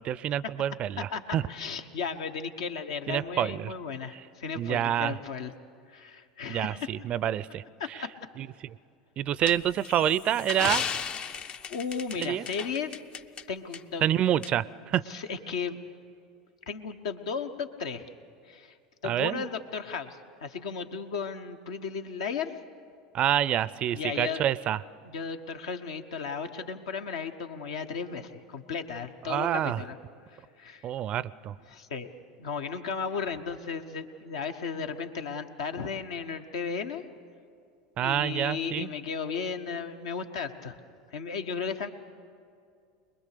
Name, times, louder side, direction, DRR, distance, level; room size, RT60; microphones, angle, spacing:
voice 1, 0.0-1.5 3.1-3.7 4.1-4.3 4.5-5.2 6.5-8.0 8.4-8.8 9.2-10.9 12.2-12.5 14.0-15.0 19.0-19.4 23.1-24.8 29.2-29.8 30.8-31.6 38.0-38.9, right 11 dB, 40° right, 20 dB, 0.4 m, -28 dB
voice 2, 1.5-5.5 5.9-6.9 7.8-8.1 11.7-13.0 13.5-14.0 15.1-15.8 16.7-18.1 18.5-18.7 19.0-22.5 23.9-24.4 25.1-30.0 30.3-30.9 31.7-32.1 32.4-37.0 38.0-40.8 41.1-41.9, left 6 dB, 70° left, 6 dB, 1.1 m, -35 dB
sound 1, 9.4-13.4 13.7-13.8 14.4-14.5, left 6 dB, 35° left, 0.6 m, -35 dB
23.0 x 21.0 x 6.7 m, 2.3 s
hypercardioid pair, 80°, 3 cm